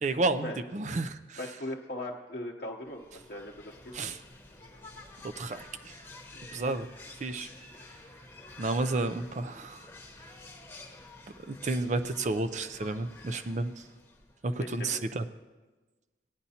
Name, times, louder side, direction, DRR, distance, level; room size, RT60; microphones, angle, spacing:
voice 1, 0.0-1.4 3.9-4.2 5.2-6.0 6.5-6.9 7.2-7.5 8.6-9.8 11.5-13.8 14.4-15.3, right 2 dB, 40° right, 9 dB, 0.4 m, -31 dB
voice 2, 1.4-3.8 6.3-6.4 14.6-15.0, left 1 dB, 50° left, -2 dB, 0.8 m, -39 dB
sound 1, 2.9-14.5, left 2 dB, 10° left, 1.0 m, -50 dB
17.5 x 10.0 x 2.8 m, 1.2 s
head